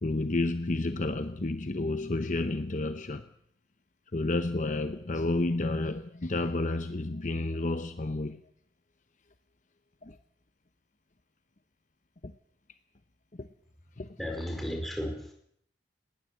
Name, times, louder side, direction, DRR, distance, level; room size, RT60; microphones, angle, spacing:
voice 1, 0.0-3.3 4.1-8.4 10.0-10.2 12.2-12.3 13.4-13.5 14.0-14.1, left 2 dB, 40° left, 0.8 m, -30 dB
voice 2, 14.2-15.3, equal, ahead, 5.0 m, -34 dB
19.5 x 18.5 x 7.8 m
head